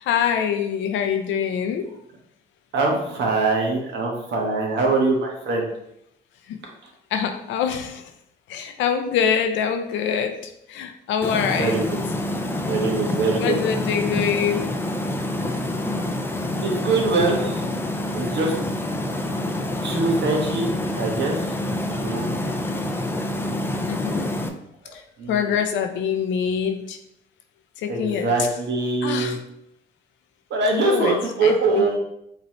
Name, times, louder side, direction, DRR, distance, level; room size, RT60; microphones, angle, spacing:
voice 1, 0.0-2.0 6.5-6.6 7.1-8.0 8.5-11.8 13.4-14.7 23.9-24.3 24.9-25.0 25.3-27.0 27.8-28.3 29.0-29.4 30.7-31.8, left 7 dB, 80° left, 6 dB, 0.6 m, -25 dB
voice 2, 2.7-5.6 11.5-12.0 12.7-13.5 16.6-17.7 18.1-18.5 19.8-20.7 20.9-21.5 21.9-22.3 24.8-25.5 27.9-29.4 30.5-32.0, right 3 dB, 65° right, 0 dB, 1.3 m, -23 dB
sound 1, 11.2-24.5, left 1 dB, 10° left, 0.5 m, -27 dB
5.3 x 3.0 x 3.1 m, 0.76 s
supercardioid pair, 75°, 19 cm